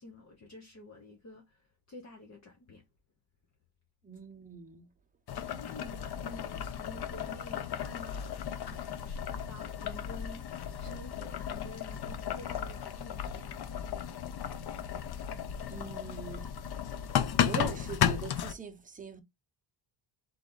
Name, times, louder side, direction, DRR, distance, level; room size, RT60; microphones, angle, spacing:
voice 1, 0.0-2.8 5.5-8.4 9.0-10.5 10.8-13.6, left 2 dB, 35° left, 1.0 m, -50 dB
voice 2, 4.0-4.9 15.7-16.5 17.4-19.2, right 5 dB, 20° right, 0.9 m, -41 dB
Boiling, 5.3-18.5, left 9 dB, 60° left, 0.7 m, -34 dB
3.7 x 3.4 x 3.9 m
wide cardioid pair, 155°, 44 cm